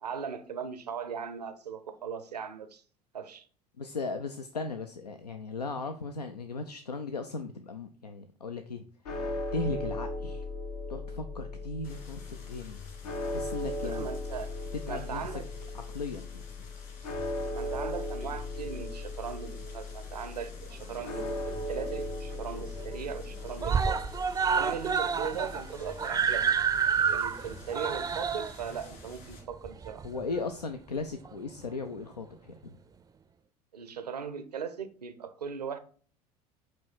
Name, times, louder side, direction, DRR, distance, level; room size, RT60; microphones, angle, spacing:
voice 1, 0.0-2.8 3.1-3.5 13.8-14.5 14.9-15.4 17.5-24.0 24.5-26.5 27.0-30.0 33.7-35.8, right 7 dB, 85° right, 0.7 m, -38 dB
voice 2, 3.8-8.8 9.5-10.4 10.9-12.8 13.3-14.1 14.9-15.4 15.7-16.4 30.0-32.8, left 3 dB, 90° left, 0.5 m, -37 dB
sound 1, 9.0-27.3, left 2 dB, 75° left, 1.1 m, -38 dB
sound 2, 11.8-29.4, left 4 dB, 55° left, 3.0 m, -51 dB
Screaming, 20.7-21.6 22.0-22.1 22.4-22.5 22.8-23.3 23.6-30.4 31.3-31.4, right 6 dB, 20° right, 0.4 m, -29 dB
8.6 x 3.2 x 4.4 m
figure-of-eight pair, 70°, 20 cm